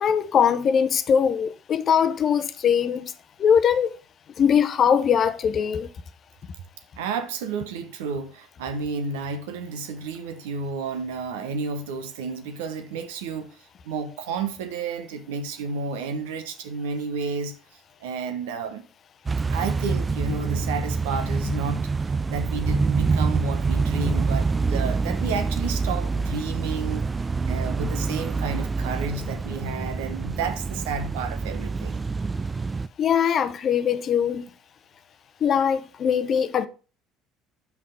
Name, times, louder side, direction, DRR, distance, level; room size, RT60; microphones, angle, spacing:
voice 1, 0.0-3.1 3.4-3.9 4.4-5.9 33.0-34.5 35.4-36.7, left 7 dB, 45° left, 0.7 m, -21 dB
voice 2, 7.0-13.6 13.8-17.5 18.0-18.8 19.5-21.8 22.3-27.1 27.5-32.0, right 5 dB, 75° right, 1.0 m, -31 dB
sound 1, 19.3-32.9, right 4 dB, 25° right, 0.3 m, -26 dB
6.0 x 5.7 x 5.0 m
hypercardioid pair, 60°, 0 cm